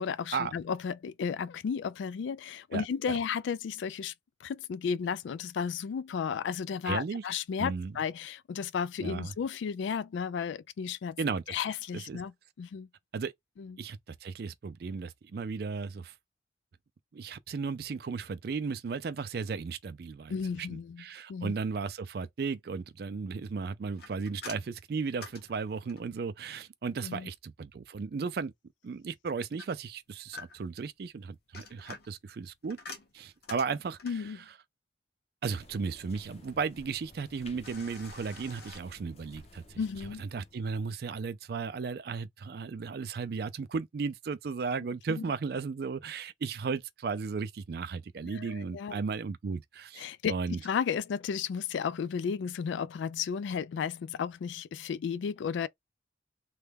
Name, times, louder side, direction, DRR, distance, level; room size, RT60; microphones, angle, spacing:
voice 1, 0.0-4.1 4.4-11.2 11.5-12.3 12.6-12.9 13.6-13.7 20.3-21.0 21.3-21.5 27.0-27.3 34.0-34.4 39.8-40.2 45.2-45.3 48.3-49.0 50.0-50.3 50.6-55.7, left 6 dB, 75° left, 0.3 m, -33 dB
voice 2, 6.9-7.2 7.6-7.9 9.0-9.3 11.2-11.4 11.9-12.2 13.1-13.3 13.8-16.1 17.1-28.5 28.8-32.8 33.1-34.3 35.4-39.8 40.2-50.6, right 5 dB, 55° right, 0.3 m, -35 dB
sound 1, 24.0-26.2 29.6-30.8 31.3-34.3 37.6-38.8, left 3 dB, 55° left, 0.9 m, -47 dB
sound 2, 35.5-40.6, left 2 dB, 35° left, 0.6 m, -54 dB
3.2 x 2.2 x 3.4 m
head